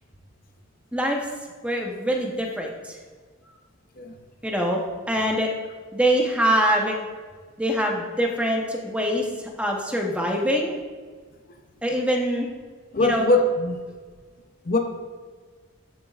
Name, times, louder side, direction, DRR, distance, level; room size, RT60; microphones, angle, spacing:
voice 1, 0.9-1.2 1.6-3.0 4.4-5.5 5.9-6.9 7.6-10.7 11.8-12.5 13.0-13.3, equal, 5° right, 0 dB, 0.8 m, -24 dB
voice 2, 12.9-13.8 14.6-14.8, left 2 dB, 40° left, 4 dB, 0.6 m, -22 dB
13.0 x 7.3 x 2.4 m, 1.5 s
head